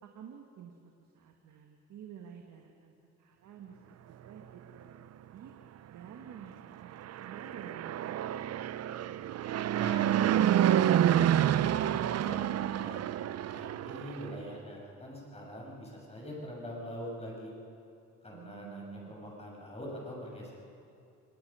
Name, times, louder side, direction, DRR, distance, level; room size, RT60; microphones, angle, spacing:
voice 1, 0.0-2.9 3.2-5.5 5.9-8.5 18.3-19.4, right 7 dB, 70° right, 3 dB, 1.7 m, -50 dB
Fixed-wing aircraft airplane, 6.9-14.3, right 11 dB, 55° right, 0.6 m, -28 dB
voice 2, 9.8-10.2 10.6-13.0 13.5-17.5 18.2-18.8 19.1-20.5, equal, 20° left, -2 dB, 7.1 m, -44 dB
26.0 x 19.0 x 5.6 m, 2.6 s
cardioid pair, 90°, 30 cm